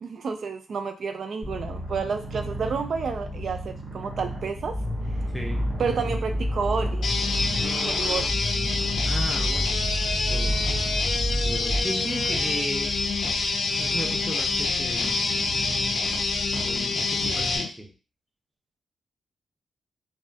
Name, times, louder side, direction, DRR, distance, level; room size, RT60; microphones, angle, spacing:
voice 1, 0.0-4.8 5.8-7.1 7.8-8.3, right 5 dB, 65° right, 6 dB, 0.3 m, -30 dB
Purr, 1.4-17.6, right 1 dB, 50° right, 1.6 m, -36 dB
sound 1, 4.7-11.8, equal, 25° right, 1.5 m, -29 dB
voice 2, 5.3-5.8 9.0-10.0 10.3-10.7 11.4-13.0 13.7-15.5 16.6-17.9, equal, 5° right, 2 dB, 0.7 m, -35 dB
sound 2, 7.0-17.7, left 4 dB, 65° left, 0.4 m, -27 dB
3.1 x 2.2 x 2.7 m, 0.33 s
cardioid pair, 80°, 0 cm